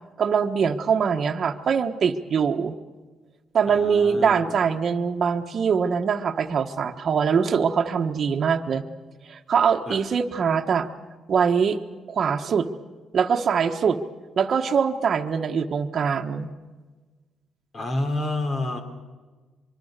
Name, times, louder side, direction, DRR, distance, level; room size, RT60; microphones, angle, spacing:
voice 1, 0.2-2.7 3.5-8.8 9.3-10.9 11.3-11.8 12.1-12.7 13.1-14.0 14.4-16.5, right 6 dB, 55° right, 5 dB, 1.3 m, -23 dB
voice 2, 3.7-4.6 9.9-10.0 17.7-18.8, left 2 dB, 45° left, 5 dB, 3.8 m, -29 dB
24.5 x 24.0 x 6.7 m, 1.4 s
cardioid pair, 90°, 0 cm